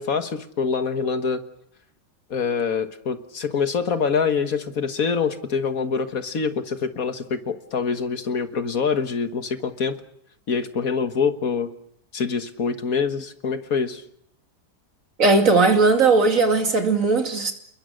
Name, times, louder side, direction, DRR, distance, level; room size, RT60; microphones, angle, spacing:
voice 1, 0.0-1.4 2.3-10.0 10.5-11.7 12.1-14.0, left 5 dB, 65° left, 1.9 m, -25 dB
voice 2, 15.2-17.5, right 3 dB, 60° right, 2.9 m, -18 dB
29.5 x 21.5 x 6.4 m
omnidirectional pair, 1.6 m